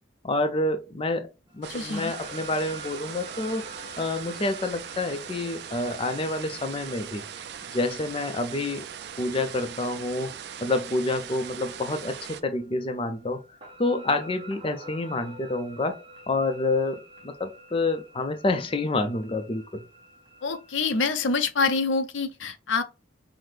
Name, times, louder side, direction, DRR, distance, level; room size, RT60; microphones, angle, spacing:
voice 1, 0.2-3.6 4.0-7.2 7.7-8.9 9.2-10.3 10.6-13.4 13.8-16.0 16.3-19.8, left 2 dB, 30° left, 0.5 m, -28 dB
sound 1, 1.5-21.4, right 1 dB, 25° right, 1.2 m, -49 dB
sound 2, 1.6-12.4, right 8 dB, 55° right, 0.4 m, -40 dB
voice 2, 1.7-2.1 20.4-22.8, left 4 dB, 70° left, 0.6 m, -26 dB
5.7 x 2.1 x 3.2 m
head